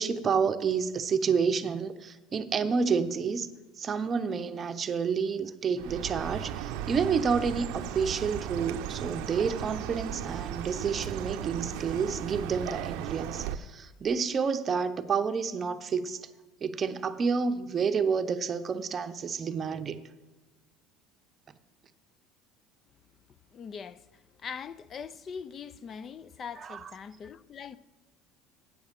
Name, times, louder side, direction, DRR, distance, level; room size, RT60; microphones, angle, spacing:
voice 1, 0.0-3.5 3.8-16.2 16.6-20.0 26.6-26.8, right 5 dB, 30° right, 0.6 m, -29 dB
Chirp tweet, 5.8-13.6, right 10 dB, 75° right, 0.6 m, -36 dB
voice 2, 23.5-27.8, left 6 dB, 35° left, 0.3 m, -42 dB
8.5 x 6.3 x 7.4 m
supercardioid pair, 115°, 0 cm